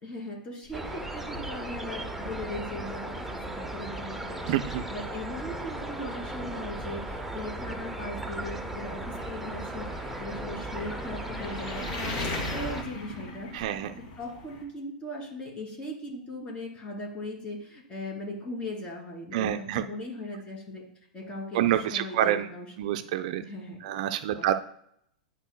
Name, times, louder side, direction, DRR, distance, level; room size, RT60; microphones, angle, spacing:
voice 1, 0.0-4.4 4.7-13.8 14.2-20.8 21.1-22.7 22.9-23.0 23.4-23.8 24.3-24.5, left 1 dB, 25° left, -1 dB, 2.8 m, -39 dB
sound 1, 0.6-14.6, left 2 dB, 45° left, 2.8 m, -42 dB
sound 2, 0.7-12.8, right 1 dB, 5° right, 0.7 m, -36 dB
voice 2, 4.5-4.8 13.5-13.9 19.3-19.8 21.5-22.5 22.8-23.4 23.8-24.5, right 12 dB, 55° right, 9 dB, 0.4 m, -27 dB
10.5 x 4.6 x 2.3 m, 0.69 s
hypercardioid pair, 100°, 5 cm